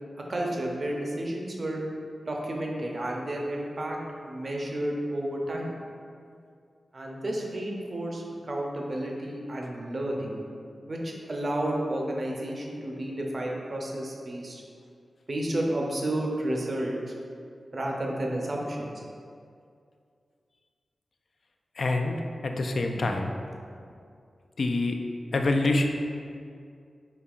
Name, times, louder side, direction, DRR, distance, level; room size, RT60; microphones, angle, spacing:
voice 1, 0.3-1.8 2.3-5.8 6.9-10.4 10.9-14.6 15.3-17.0 17.7-19.0 22.9-23.1, right 1 dB, 50° right, -1 dB, 0.6 m, -31 dB
voice 2, 21.8-22.2 22.4-23.3 24.6-25.0 25.3-25.9, left 2 dB, 65° left, 3 dB, 0.3 m, -25 dB
5.2 x 2.8 x 2.4 m, 2.3 s
cardioid pair, 70°, 0 cm